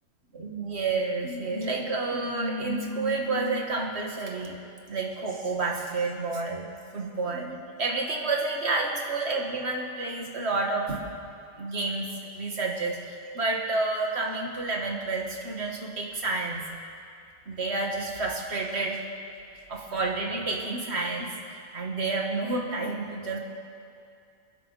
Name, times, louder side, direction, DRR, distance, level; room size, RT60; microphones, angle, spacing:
voice 1, 0.3-4.6 4.9-6.7 6.9-11.0 11.6-16.6 17.5-19.0 19.7-23.4, right 3 dB, 65° right, 0 dB, 2.0 m, -30 dB
26.5 x 11.0 x 4.1 m, 2.4 s
omnidirectional pair, 1.2 m